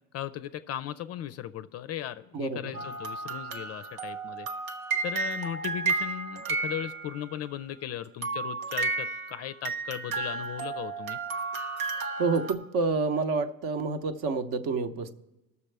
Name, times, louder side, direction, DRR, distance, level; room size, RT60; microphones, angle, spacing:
voice 1, 0.1-4.5 5.0-11.2, left 11 dB, 40° left, 12 dB, 0.4 m, -37 dB
voice 2, 2.3-2.9 11.9-15.1, right 4 dB, 50° right, 10 dB, 0.9 m, -29 dB
sound 1, 2.7-7.5 8.2-12.5, right 4 dB, 85° right, 1.1 m, -33 dB
19.0 x 6.9 x 3.4 m, 1.0 s
supercardioid pair, 100°, 42 cm